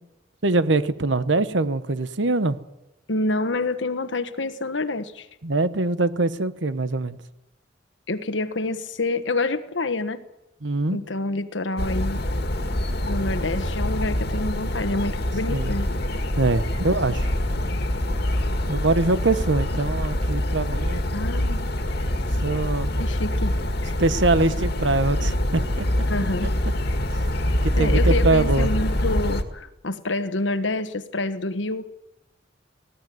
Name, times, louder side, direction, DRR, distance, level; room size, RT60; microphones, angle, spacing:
voice 1, 0.4-2.6 5.4-7.2 10.6-11.0 15.5-15.7 16.4-17.3 18.7-21.0 22.4-23.0 24.0-25.9 27.5-28.7, right 2 dB, 75° right, 13 dB, 1.1 m, -23 dB
voice 2, 3.1-5.3 8.1-10.2 10.9-12.2 13.0-15.9 21.1-21.6 23.0-23.5 23.8-23.9 26.1-26.5 27.7-31.9, left 2 dB, 75° left, 11 dB, 1.3 m, -27 dB
sound 1, 11.8-29.4, left 1 dB, 60° left, 2.0 m, -25 dB
19.5 x 16.0 x 9.4 m, 0.95 s
head